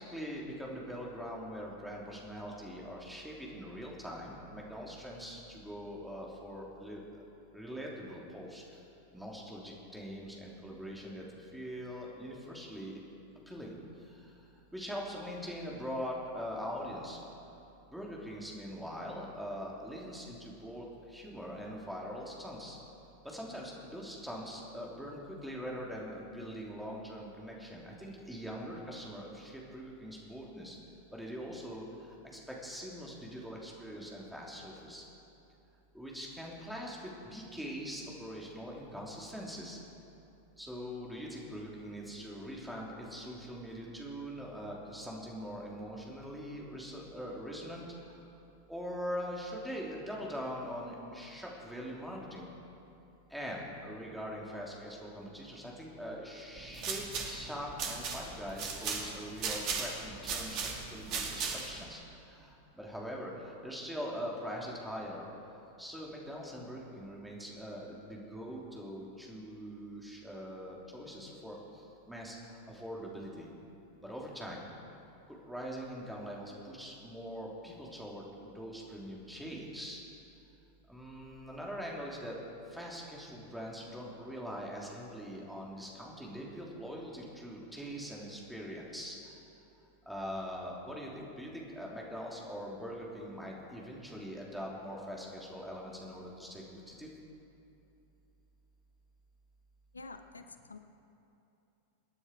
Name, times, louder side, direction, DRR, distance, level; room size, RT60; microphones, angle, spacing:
voice 1, 0.1-7.0 7.5-8.6 9.1-11.2 11.5-13.0 13.5-13.7 14.7-17.2 17.9-20.8 21.1-22.8 23.2-30.8 31.1-31.8 32.5-35.0 35.9-39.8 40.6-47.8 48.7-52.5 53.3-62.0 62.3-62.5 62.8-63.3 63.6-65.2 65.8-71.6 72.1-72.4 72.7-73.5 74.0-74.6 75.3-80.0 80.9-82.4 82.7-89.2 90.1-97.1, equal, ahead, -3 dB, 3.2 m, -42 dB
sound 1, 56.6-61.8, right 5 dB, 40° right, 2.5 m, -37 dB
voice 2, 99.9-100.8, left 3 dB, 75° left, 9 dB, 0.7 m, -48 dB
27.0 x 9.8 x 4.9 m, 2.8 s
figure-of-eight pair, 90°, 0 cm